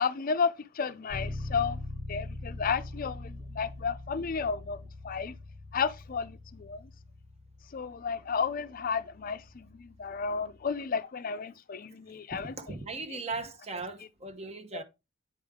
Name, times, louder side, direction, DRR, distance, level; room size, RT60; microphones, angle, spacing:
voice 1, 0.0-1.8 2.1-4.8 5.0-5.3 5.7-6.8 7.7-12.5 13.1-13.2 14.7-14.8, left 5 dB, 45° left, 0.5 m, -32 dB
Bass guitar, 1.1-10.8, left 2 dB, 90° right, 2.7 m, -43 dB
voice 2, 12.3-14.8, right 3 dB, 30° right, 0.9 m, -38 dB
8.9 x 5.1 x 3.6 m
head